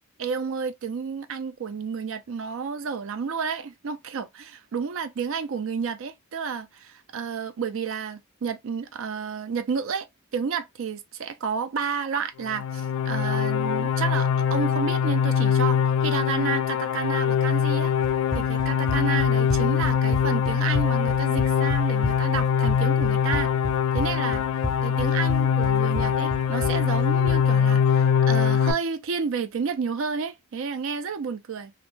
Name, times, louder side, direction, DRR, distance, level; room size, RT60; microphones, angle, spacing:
voice 1, 0.2-10.1 10.3-17.9 18.3-23.5 23.9-24.4 24.8-31.7, right 6 dB, 65° right, 0.4 m, -31 dB
sound 1, 12.4-28.7, left 7 dB, 75° left, 0.3 m, -23 dB
Run, 18.0-27.5, left 1 dB, ahead, 0.5 m, -33 dB
2.4 x 2.1 x 3.0 m
head